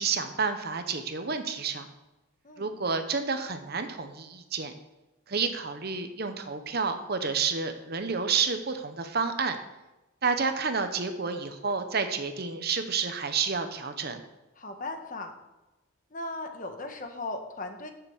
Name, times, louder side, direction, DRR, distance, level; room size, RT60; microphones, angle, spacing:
voice 1, 0.0-1.9 2.6-4.7 5.3-9.6 10.2-14.2, right 5 dB, 45° right, 8 dB, 0.9 m, -30 dB
voice 2, 14.5-15.3 16.1-17.9, left 2 dB, 40° left, 5 dB, 1.3 m, -37 dB
10.5 x 7.0 x 7.2 m, 1.0 s
head